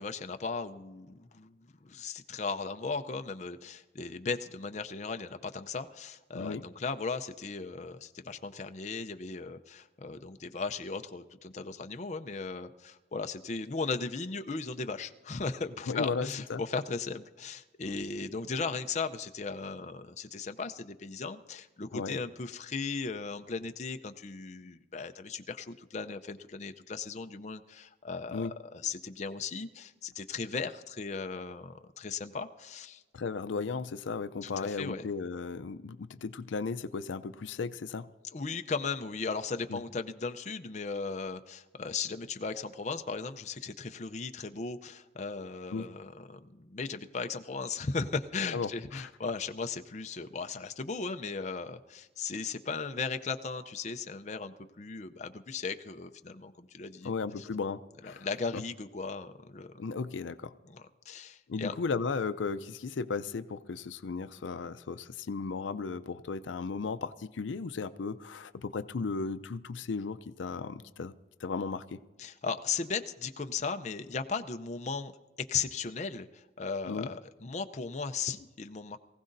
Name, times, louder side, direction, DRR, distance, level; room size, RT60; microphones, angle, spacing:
voice 1, 0.0-1.6 1.8-33.0 34.4-35.0 38.3-57.5 58.0-59.7 60.7-61.7 72.2-75.1 75.5-79.0, left 4 dB, 40° left, 7 dB, 0.5 m, -37 dB
voice 2, 15.9-16.6 21.9-22.2 28.3-28.5 33.1-38.1 39.7-39.8 45.7-45.9 48.5-48.7 49.0-49.1 57.0-58.3 58.5-58.6 59.8-60.5 61.5-71.1 71.4-72.0 76.8-77.1, left 4 dB, 85° left, 12 dB, 0.5 m, -35 dB
23.0 x 15.5 x 2.6 m, 1.2 s
head